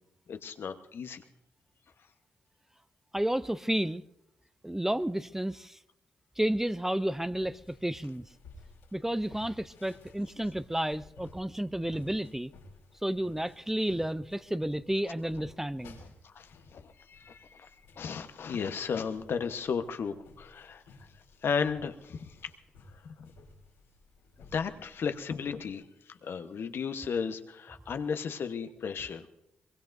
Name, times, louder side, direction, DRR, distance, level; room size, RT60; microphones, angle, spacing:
voice 1, 0.3-1.2 16.2-17.7 18.0-20.8 21.4-22.3 23.0-23.1 24.5-25.8 26.2-29.3, left 6 dB, 65° left, 1.1 m, -34 dB
voice 2, 3.1-4.0 4.6-5.8 6.4-8.3 8.9-12.5 13.0-16.0, right 1 dB, 10° right, 0.5 m, -31 dB
sound 1, 7.0-25.7, left 3 dB, 90° left, 3.6 m, -56 dB
22.5 x 22.5 x 2.7 m
supercardioid pair, 50°, 4 cm